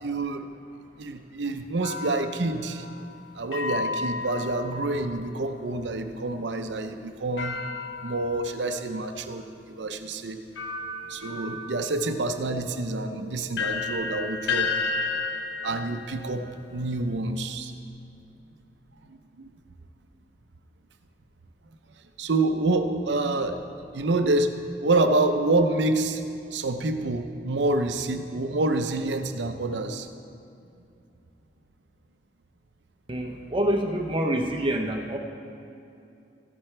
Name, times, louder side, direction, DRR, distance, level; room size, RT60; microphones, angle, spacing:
voice 1, 0.0-0.5 1.0-2.9 3.3-7.6 8.0-10.4 11.1-14.7 15.6-16.5 16.7-17.7 19.1-19.5 22.2-23.6 23.9-24.5 24.8-26.2 26.5-30.1, right 2 dB, 75° right, 7 dB, 0.7 m, -27 dB
sound 1, 1.8-5.3 7.4-8.9 9.6-9.7 10.6-17.4, left 4 dB, 75° left, 0.8 m, -33 dB
voice 2, 33.1-35.2, right 1 dB, 30° right, 2 dB, 0.7 m, -26 dB
14.0 x 10.0 x 3.3 m, 2.6 s
head